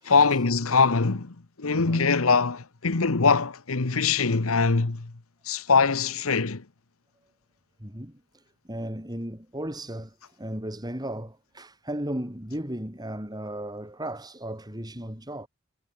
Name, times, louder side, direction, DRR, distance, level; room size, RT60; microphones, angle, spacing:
voice 1, 0.0-5.1 5.4-6.6, left 4 dB, 85° left, 1.2 m, -23 dB
voice 2, 1.7-2.1 7.8-8.2 8.7-15.5, right 1 dB, 20° right, 5.8 m, -35 dB
head